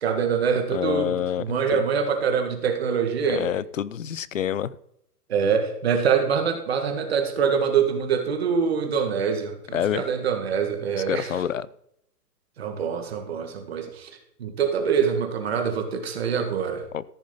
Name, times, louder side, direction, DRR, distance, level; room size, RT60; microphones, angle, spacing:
voice 1, 0.0-3.5 5.3-11.3 12.6-14.1 14.4-16.8, right 6 dB, 40° right, 6 dB, 1.8 m, -24 dB
voice 2, 0.7-1.8 3.3-4.8 9.7-10.0 11.1-11.7 16.9-17.0, left 10 dB, 55° left, 20 dB, 0.5 m, -27 dB
14.0 x 6.5 x 5.3 m, 0.75 s
hypercardioid pair, 175°, 48 cm